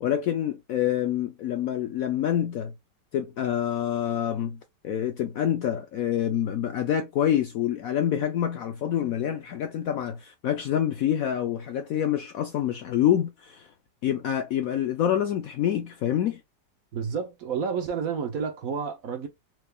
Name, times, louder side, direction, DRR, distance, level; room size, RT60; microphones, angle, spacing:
voice 1, 0.0-2.7 3.1-4.6 4.8-13.7 14.0-16.4, left 10 dB, 70° left, 0.8 m, -26 dB
voice 2, 16.9-19.3, right 6 dB, 60° right, 1.1 m, -30 dB
4.5 x 3.3 x 2.3 m
omnidirectional pair, 1.9 m